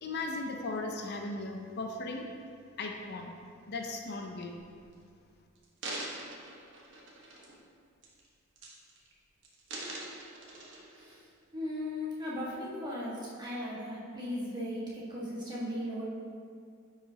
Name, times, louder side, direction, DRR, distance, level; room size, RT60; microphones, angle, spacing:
voice 1, 0.0-2.3 2.8-3.3 3.7-4.5, left 2 dB, 50° left, 2 dB, 0.5 m, -37 dB
sound 1, 4.8-4.9 5.5-7.7 8.0-8.3 8.6-9.1 9.4-11.1 11.7-11.8, right 2 dB, 60° right, 1.1 m, -43 dB
voice 2, 11.5-16.0, left 1 dB, 20° right, -8 dB, 1.6 m, -37 dB
10.0 x 4.9 x 2.8 m, 2.2 s
head